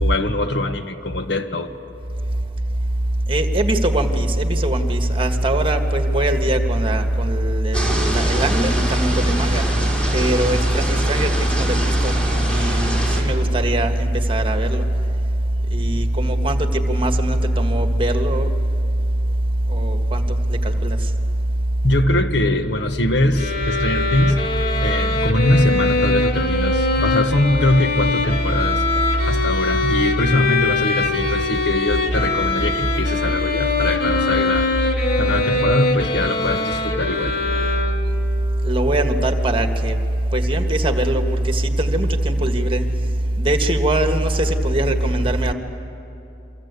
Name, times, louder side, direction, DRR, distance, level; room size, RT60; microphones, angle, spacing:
voice 1, 0.0-1.7 21.8-24.4 24.8-28.8 29.3-34.7 35.2-37.4, left 1 dB, 75° left, 7 dB, 1.6 m, -22 dB
voice 2, 3.3-9.7 10.1-12.1 12.5-14.9 15.7-18.5 19.7-21.0 38.6-40.0 40.3-42.9 43.4-45.5, right 1 dB, 30° right, 6 dB, 1.6 m, -20 dB
sound 1, 7.7-13.2, right 1 dB, 5° left, 4.8 m, -25 dB
sound 2, 23.3-38.3, left 3 dB, 60° left, 2.7 m, -22 dB
28.5 x 24.5 x 8.3 m, 2.9 s
head